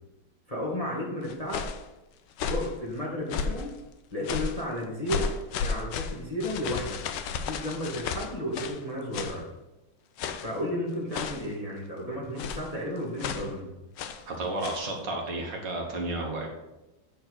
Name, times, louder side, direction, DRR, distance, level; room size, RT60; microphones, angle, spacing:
voice 1, 0.5-1.6 2.4-3.7 4.1-5.3 5.6-7.0 7.4-9.4 10.4-13.7, left 1 dB, 20° left, -4 dB, 1.6 m, -33 dB
sound 1, 1.2-1.8 2.3-2.7 3.3-3.7 4.2-4.6 5.1-8.8 9.1-9.4 10.2-10.6 11.1-11.5 12.4-12.7 13.2-13.5 14.0-14.3 14.6-14.9, left 6 dB, 70° left, 1.2 m, -33 dB
voice 2, 14.3-16.5, right 2 dB, 60° right, 0 dB, 2.0 m, -32 dB
8.6 x 4.4 x 6.3 m, 0.99 s
omnidirectional pair, 2.3 m